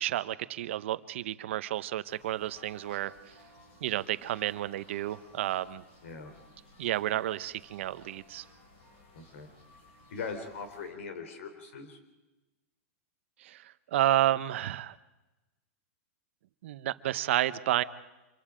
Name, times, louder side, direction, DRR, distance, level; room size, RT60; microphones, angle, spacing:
voice 1, 0.0-3.1 3.8-5.8 6.8-8.4 13.4-15.0 16.6-17.8, right 13 dB, 60° right, 14 dB, 0.8 m, -31 dB
Rode Bells, 2.1-10.9, left 2 dB, 50° left, 7.9 m, -58 dB
voice 2, 6.0-6.3 9.1-9.5 10.1-12.0, left 5 dB, 70° left, 6 dB, 4.0 m, -40 dB
26.5 x 23.0 x 5.1 m, 1.1 s
supercardioid pair, 165°, 7 cm